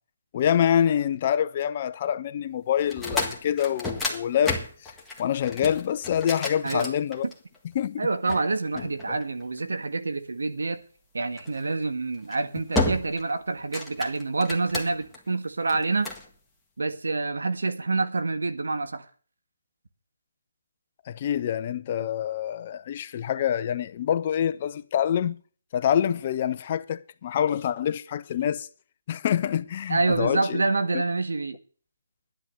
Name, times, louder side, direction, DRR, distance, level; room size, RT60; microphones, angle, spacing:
voice 1, 0.3-4.9 5.2-7.3 7.7-8.0 8.8-9.2 21.1-25.4 25.7-28.7 29.1-30.6 30.9-31.0, left 9 dB, 35° left, 0.7 m, -26 dB
sound 1, 2.8-7.6 8.3-9.6 11.4-11.6 12.1-12.4 12.8-13.3 13.6-15.2 15.7-16.3, left 2 dB, 5° left, 1.8 m, -31 dB
voice 2, 8.0-10.8 11.1-16.1 16.8-19.0 29.9-31.6, right 3 dB, 75° right, 1.6 m, -27 dB
12.0 x 10.5 x 6.6 m
figure-of-eight pair, 155°, 0 cm